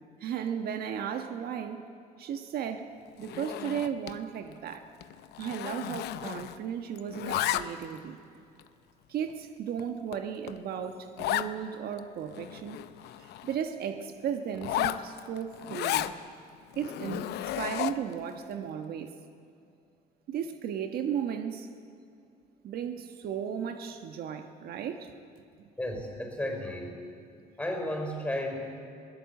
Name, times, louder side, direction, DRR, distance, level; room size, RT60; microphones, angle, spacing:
voice 1, 0.2-1.8 2.2-2.9 3.2-4.9 5.4-8.2 9.1-12.8 13.2-16.1 16.8-19.1 20.3-21.7 22.6-25.1 25.6-25.7, right 8 dB, 65° right, 6 dB, 1.3 m, -35 dB
Zipper (clothing), 3.2-4.2 4.5-4.7 5.0-6.7 7.0-8.0 8.6-8.7 9.3-9.4 9.8-9.9 10.1-10.2 10.5-10.6 11.2-11.5 12.0-12.1 12.3-13.6 14.5-16.1 16.7-18.1, left 13 dB, 80° left, 0.8 m, -33 dB
voice 2, 25.8-27.0 27.6-28.7, left 1 dB, 10° left, 2 dB, 5.4 m, -33 dB
22.0 x 17.5 x 8.4 m, 2.5 s
cardioid pair, 110°, 17 cm